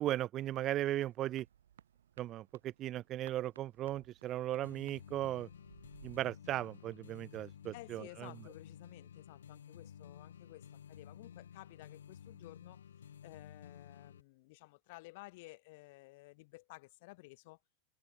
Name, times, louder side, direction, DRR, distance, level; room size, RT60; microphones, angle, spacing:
voice 1, 0.0-1.5 2.2-5.5 6.0-8.3, right 13 dB, 40° right, 0.5 m, -37 dB
sound 1, 0.8-6.3, right 9 dB, 75° right, 3.4 m, -61 dB
sound 2, 4.6-14.2, left 8 dB, 75° left, 1.6 m, -54 dB
voice 2, 7.7-12.8 13.2-17.6, left 23 dB, 55° left, 2.1 m, -54 dB
open air
figure-of-eight pair, 90°, 0 cm